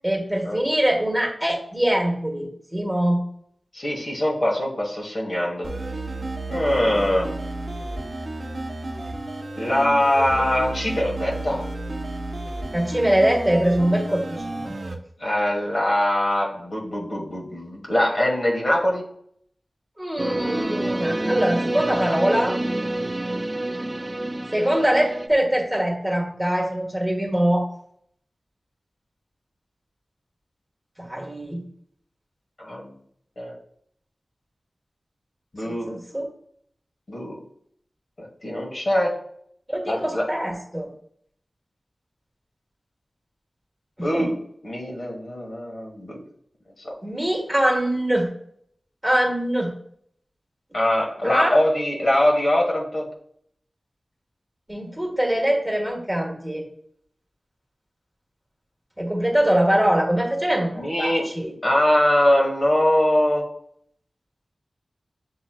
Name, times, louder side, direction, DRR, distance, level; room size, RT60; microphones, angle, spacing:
voice 1, 0.0-3.2 12.7-14.7 15.7-15.9 20.0-22.6 24.5-27.7 31.0-31.6 35.6-36.2 39.7-40.9 44.0-44.3 47.0-48.3 49.0-49.7 51.2-51.5 54.7-56.6 59.0-61.5, right 1 dB, 10° right, 0 dB, 1.4 m, -23 dB
voice 2, 3.7-5.7 6.5-7.3 9.6-11.6 15.2-19.0 32.6-32.9 33.4-33.5 35.5-36.0 37.1-37.4 38.2-39.2 39.9-40.3 44.0-44.4 44.6-46.2 46.8-46.9 50.7-53.1 60.7-61.3 61.6-63.5, left 1 dB, 55° left, -2 dB, 1.3 m, -22 dB
sound 1, 5.6-14.9, right 2 dB, 60° right, 0.7 m, -32 dB
sound 2, 20.2-25.3, right 1 dB, 30° right, 0.3 m, -27 dB
7.5 x 3.0 x 2.3 m, 0.66 s
wide cardioid pair, 60°, 0 cm